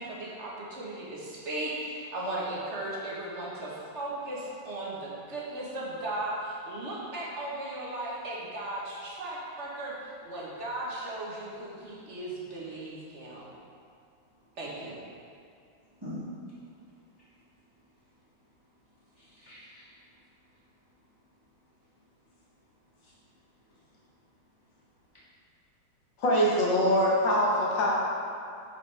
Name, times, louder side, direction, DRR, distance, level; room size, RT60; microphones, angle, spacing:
voice 1, 0.0-9.9 10.2-13.5 14.6-15.0, right 1 dB, 40° right, -5 dB, 1.3 m, -36 dB
voice 2, 16.0-16.6 17.1-17.4 17.7-17.8 18.9-20.1 20.5-20.9 22.3-22.4 22.9-23.2 23.6-24.0, left 1 dB, 15° right, -10 dB, 1.2 m, -46 dB
voice 3, 26.2-28.0, equal, 70° left, -4 dB, 1.8 m, -23 dB
9.9 x 4.8 x 3.3 m, 2.4 s
omnidirectional pair, 2.2 m